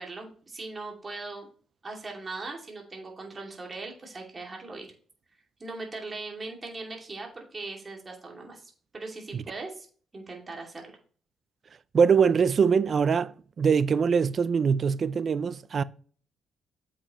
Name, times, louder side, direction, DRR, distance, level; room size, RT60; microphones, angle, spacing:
voice 1, 0.0-1.5 1.8-4.9 5.6-9.9 10.1-10.8, right 3 dB, 30° right, 2.5 m, -39 dB
voice 2, 11.9-15.8, right 6 dB, 45° right, 0.4 m, -23 dB
7.8 x 6.3 x 3.1 m
cardioid pair, 90°, 0 cm